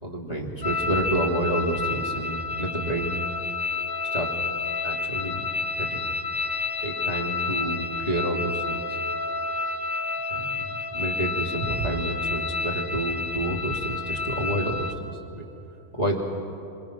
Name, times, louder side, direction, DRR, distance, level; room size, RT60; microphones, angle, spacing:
voice 1, 0.0-3.2 4.1-4.3 4.8-5.5 5.8-6.0 6.8-9.0 10.3-14.9 15.3-15.5 15.9-16.2, right 1 dB, 35° left, -1 dB, 3.1 m, -29 dB
sound 1, 0.6-14.9, left 4 dB, 55° left, 1.4 m, -30 dB
26.5 x 26.0 x 6.3 m, 2.8 s
omnidirectional pair, 1.2 m